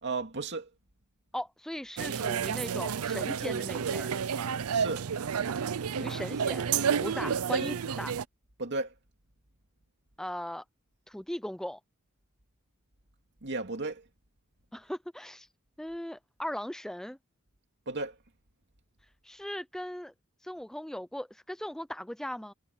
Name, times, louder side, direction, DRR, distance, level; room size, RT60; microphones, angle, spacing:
voice 1, 0.0-0.7 4.7-5.1 7.2-7.4 8.6-8.9 13.4-14.0 17.9-18.2, right 3 dB, 55° right, 2.6 m, -34 dB
voice 2, 1.3-4.1 6.0-6.7 7.0-8.1 10.2-10.6 11.1-11.8 14.7-15.5 15.8-17.2 19.2-20.1 20.4-22.5, equal, ahead, 0.4 m, -38 dB
sound 1, 2.0-8.2, right 7 dB, 80° right, 0.5 m, -30 dB
head